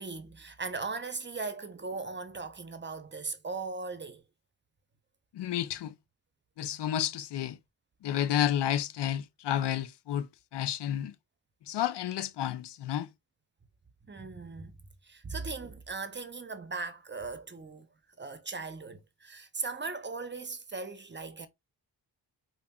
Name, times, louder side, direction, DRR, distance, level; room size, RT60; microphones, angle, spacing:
voice 1, 0.0-4.2 14.1-14.8 15.0-17.9 18.2-21.5, right 4 dB, 25° right, 0.7 m, -38 dB
voice 2, 5.3-5.9 6.6-7.6 8.0-10.3 10.5-11.1 11.7-13.1, left 11 dB, 70° left, 0.6 m, -31 dB
5.1 x 2.4 x 2.3 m
cardioid pair, 60°, 43 cm